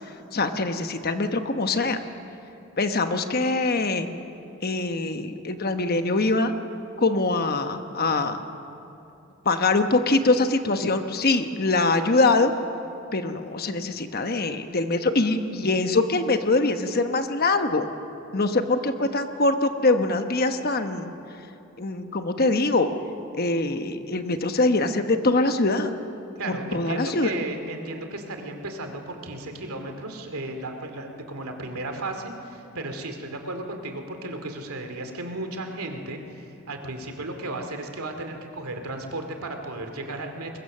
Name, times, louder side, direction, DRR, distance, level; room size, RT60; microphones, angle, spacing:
voice 1, 0.3-2.0 2.8-4.1 4.6-6.5 7.0-8.4 9.4-12.5 13.1-17.9 18.3-21.1 21.8-22.9 23.3-25.9 26.5-27.3, left 3 dB, 45° left, 7 dB, 1.0 m, -23 dB
voice 2, 26.4-40.6, right 2 dB, 80° right, 5 dB, 2.4 m, -34 dB
22.5 x 21.5 x 6.6 m, 2.8 s
head